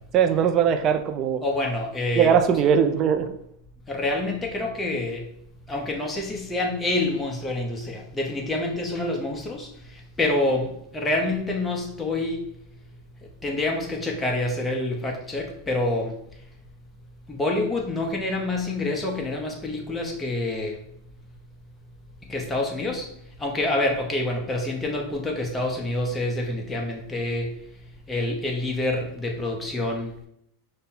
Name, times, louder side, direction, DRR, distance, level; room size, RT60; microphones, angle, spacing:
voice 1, 0.1-1.4 2.2-3.3, right 8 dB, 35° right, 8 dB, 0.4 m, -20 dB
voice 2, 1.4-2.3 3.9-5.3 5.7-12.4 13.4-16.1 17.3-20.8 22.3-23.1 23.4-27.6 28.1-30.1, left 2 dB, 10° left, 0 dB, 0.8 m, -27 dB
5.4 x 2.2 x 4.3 m, 0.72 s
supercardioid pair, 145°, 0 cm